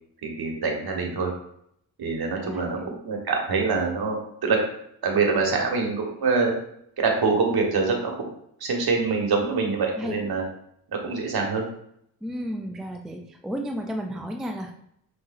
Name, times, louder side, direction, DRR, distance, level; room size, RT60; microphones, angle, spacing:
voice 1, 0.2-1.3 2.0-2.8 3.0-4.6 5.0-6.6 7.0-8.1 8.6-10.4 11.0-11.6, right 4 dB, 45° right, 1 dB, 1.4 m, -24 dB
voice 2, 2.4-3.0 10.0-10.1 12.2-14.7, equal, ahead, 3 dB, 0.4 m, -33 dB
5.4 x 3.1 x 2.6 m, 0.73 s
hypercardioid pair, 50°, 50 cm